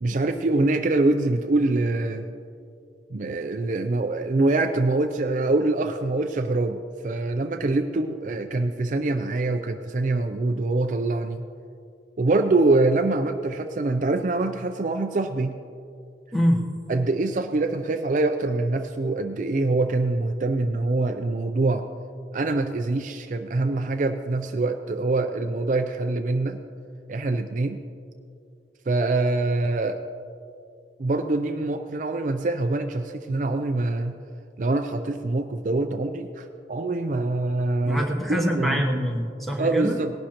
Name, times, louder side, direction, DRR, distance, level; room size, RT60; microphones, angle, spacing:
voice 1, 0.0-2.3 3.1-11.4 12.2-15.6 16.9-21.8 22.3-26.6 27.1-27.8 28.9-30.0 31.0-34.2 34.6-38.8 39.6-40.1, right 2 dB, 45° right, 6 dB, 0.4 m, -24 dB
voice 2, 16.3-16.6 37.9-40.0, equal, ahead, 1 dB, 1.0 m, -24 dB
18.5 x 11.5 x 2.9 m, 2.4 s
head